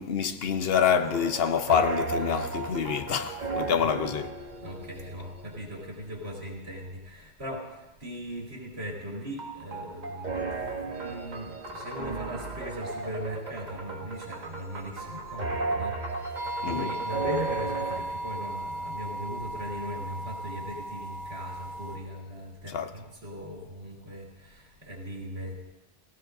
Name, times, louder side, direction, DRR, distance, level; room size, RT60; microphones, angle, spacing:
voice 1, 0.0-4.3 16.6-16.9 22.7-22.9, left 7 dB, 70° left, 0.9 m, -26 dB
sound 1, 1.0-6.0 9.4-18.0, right 3 dB, 45° right, 1.2 m, -35 dB
voice 2, 3.8-4.2 4.6-25.6, equal, 85° right, 3.1 m, -39 dB
sound 2, 16.3-22.0, right 1 dB, 30° right, 2.3 m, -36 dB
17.0 x 17.0 x 2.6 m
omnidirectional pair, 1.0 m